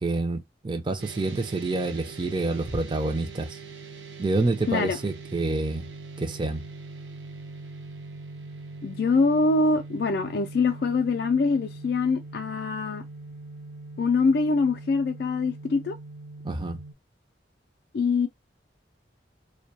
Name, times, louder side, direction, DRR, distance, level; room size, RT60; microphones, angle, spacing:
voice 1, 0.0-3.6 4.2-5.9 6.2-6.6 16.4-16.8, right 2 dB, 25° right, 0.4 m, -28 dB
sound 1, 1.0-16.9, right 3 dB, 80° right, 0.6 m, -42 dB
voice 2, 8.8-13.0 14.0-16.0 17.9-18.3, left 4 dB, 60° left, 0.3 m, -24 dB
2.2 x 2.1 x 2.6 m
head